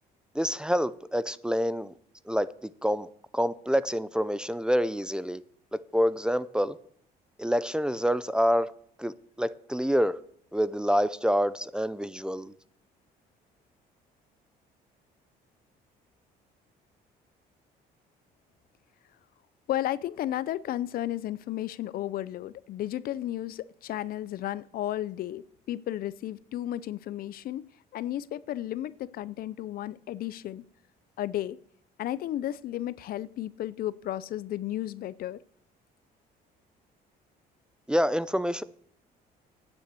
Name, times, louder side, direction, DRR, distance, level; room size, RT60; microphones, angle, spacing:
voice 1, 0.3-1.9 2.3-5.4 5.7-6.8 7.4-8.7 9.0-10.2 10.5-12.5 37.9-38.6, equal, 5° right, 0.5 m, -27 dB
voice 2, 19.7-27.6 27.9-30.6 31.2-31.6 32.0-35.4, left 13 dB, 60° left, 0.5 m, -33 dB
9.5 x 7.1 x 7.7 m
cardioid pair, 110°, 17 cm